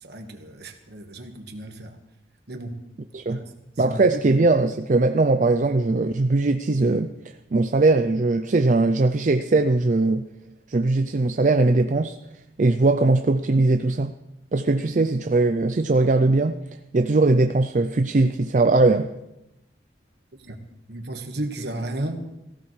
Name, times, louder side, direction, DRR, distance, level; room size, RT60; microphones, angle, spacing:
voice 1, 0.0-2.0 2.5-2.8 3.3-3.4 3.8-4.2 20.5-20.6 20.9-22.2, right 1 dB, 60° right, 5 dB, 1.5 m, -33 dB
voice 2, 3.8-7.1 7.5-10.3 10.7-12.2 12.6-14.1 14.5-16.6 16.9-19.1, right 2 dB, 45° right, 8 dB, 0.4 m, -20 dB
18.0 x 15.5 x 3.3 m, 0.92 s
head